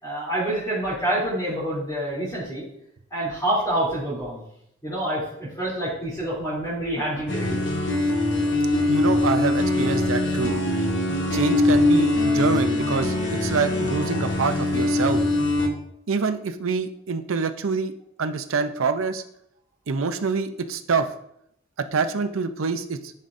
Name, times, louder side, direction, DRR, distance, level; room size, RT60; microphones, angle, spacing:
voice 1, 0.0-2.6 3.1-4.4 4.8-7.6 10.4-10.6, right 1 dB, 15° left, -9 dB, 3.0 m, -27 dB
sound 1, 7.3-15.7, left 2 dB, 60° left, 1.1 m, -22 dB
voice 2, 8.9-10.6 11.3-13.2 13.4-15.2 16.1-17.9 18.2-19.2 19.9-21.1 21.8-23.1, right 4 dB, 85° right, 9 dB, 0.6 m, -26 dB
10.5 x 5.5 x 2.6 m, 0.75 s
head